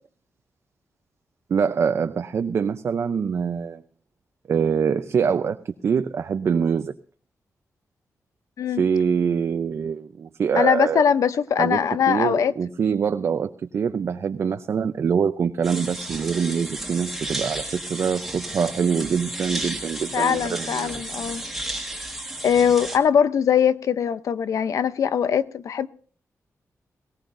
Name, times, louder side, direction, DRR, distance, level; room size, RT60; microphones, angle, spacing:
voice 1, 1.5-3.8 4.5-6.9 8.7-11.0 11.6-21.0, right 6 dB, 50° right, 0.5 m, -24 dB
voice 2, 10.6-12.5 20.1-21.4 22.4-25.9, left 8 dB, 75° left, 0.6 m, -21 dB
sound 1, 15.6-23.0, right 1 dB, ahead, 1.5 m, -33 dB
18.5 x 17.5 x 2.6 m
wide cardioid pair, 175°, 6 cm